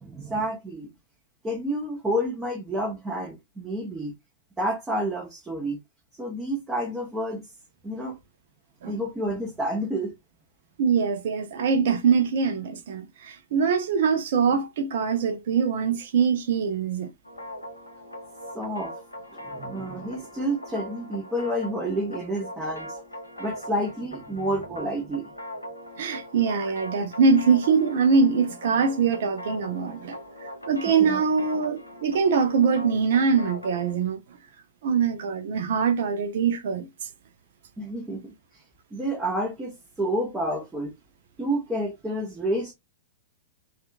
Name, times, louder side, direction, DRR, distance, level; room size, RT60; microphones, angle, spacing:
voice 1, 0.0-0.9 1.4-4.1 4.6-5.8 6.2-7.5 7.8-8.2 8.9-10.1 18.5-18.9 19.4-23.0 23.4-25.3 31.0-31.2 37.8-38.3 38.9-40.9 41.4-42.7, right 1 dB, 10° right, 0.8 m, -29 dB
voice 2, 10.8-17.1 26.0-30.2 30.7-34.2 34.8-36.9, right 5 dB, 55° right, 0.5 m, -23 dB
sound 1, 17.3-33.9, equal, 85° left, 0.6 m, -40 dB
2.7 x 2.4 x 2.4 m
figure-of-eight pair, 105°, 0 cm